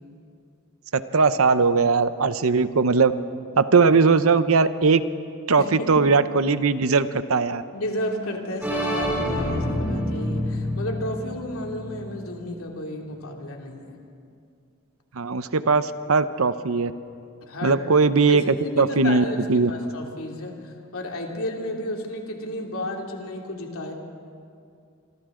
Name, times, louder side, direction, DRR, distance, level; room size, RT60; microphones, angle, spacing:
voice 1, 0.9-3.1 3.6-5.0 5.5-7.6 15.1-16.9 17.6-19.7, right 4 dB, 70° right, 12 dB, 0.8 m, -19 dB
voice 2, 5.6-5.9 7.7-14.0 17.5-17.8 18.3-18.4 18.8-19.4 19.7-23.9, left 1 dB, 75° left, 1 dB, 2.7 m, -32 dB
sound 1, 8.6-12.4, equal, 10° right, 5.4 m, -27 dB
26.5 x 25.5 x 3.8 m, 2.4 s
head